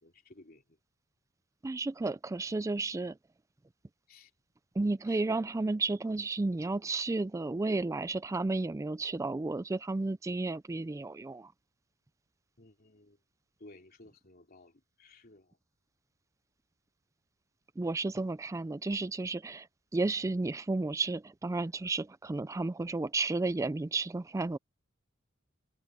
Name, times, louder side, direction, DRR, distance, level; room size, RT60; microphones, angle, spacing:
voice 1, 0.0-0.6 4.1-4.3 5.1-5.2 12.6-13.2 13.6-15.6, left 2 dB, 50° left, 3.2 m, -56 dB
voice 2, 1.6-3.2 4.8-11.5 17.8-19.7 19.9-24.6, right 3 dB, 15° right, 0.3 m, -32 dB
head